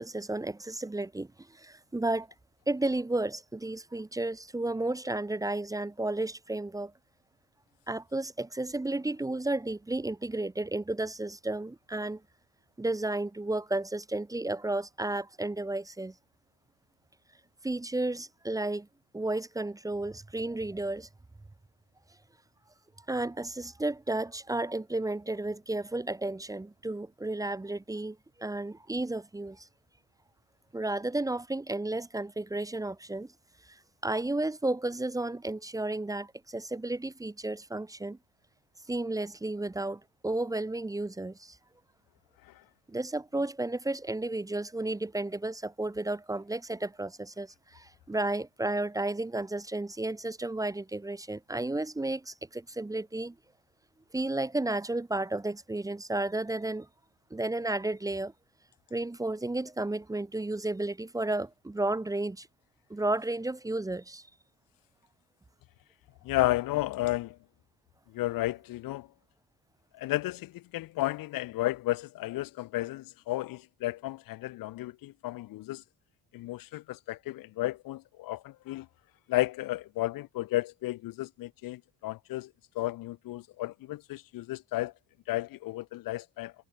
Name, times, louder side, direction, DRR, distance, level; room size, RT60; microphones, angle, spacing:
voice 1, 0.0-2.3 2.7-6.9 7.9-12.2 12.8-16.1 17.6-18.9 19.1-21.1 23.1-29.7 30.7-33.3 33.7-33.8 34.0-38.2 38.9-41.6 42.9-53.3 54.1-56.9 57.3-58.3 58.9-62.5 62.9-64.3, right 2 dB, 10° right, 0.8 m, -32 dB
voice 2, 66.2-67.4 68.1-69.1 69.9-75.8 76.3-78.9 79.3-84.9 85.3-86.5, left 17 dB, 75° left, 1.0 m, -33 dB
cardioid pair, 110°, 34 cm